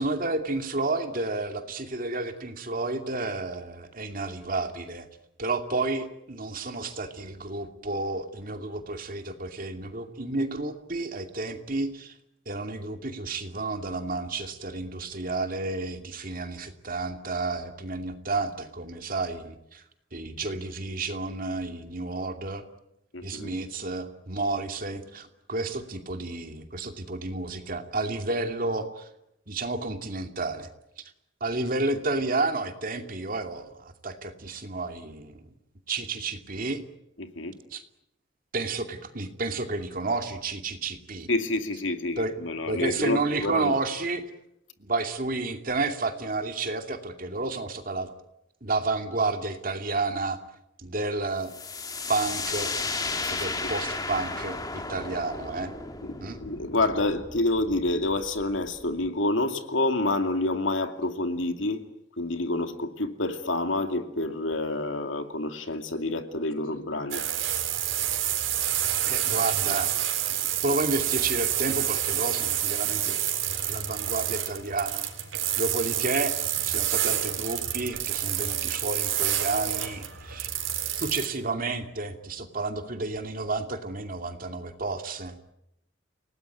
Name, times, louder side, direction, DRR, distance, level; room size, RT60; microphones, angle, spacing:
voice 1, 0.0-5.1 5.4-12.2 12.5-19.8 20.1-22.6 23.2-29.1 29.5-30.7 31.4-35.4 35.9-36.8 37.7-37.8 38.5-41.3 42.2-42.3 42.7-44.2 44.8-48.1 48.6-50.4 50.8-51.5 52.1-52.7 53.3-55.7 56.2-56.4 69.0-70.1 70.6-73.2 73.5-75.1 75.6-80.5 81.0-85.4, right 3 dB, 45° right, 6 dB, 2.6 m, -31 dB
voice 2, 23.1-23.5 37.2-37.6 41.3-43.8 53.2-53.7 56.0-61.8 62.2-67.2, left 2 dB, 80° left, 7 dB, 2.5 m, -28 dB
sound 1, 51.5-59.1, left 3 dB, 20° left, 1.9 m, -34 dB
liberty line bike air, 67.1-81.3, right 11 dB, 85° right, 3.9 m, -28 dB
29.5 x 19.0 x 9.3 m, 0.84 s
head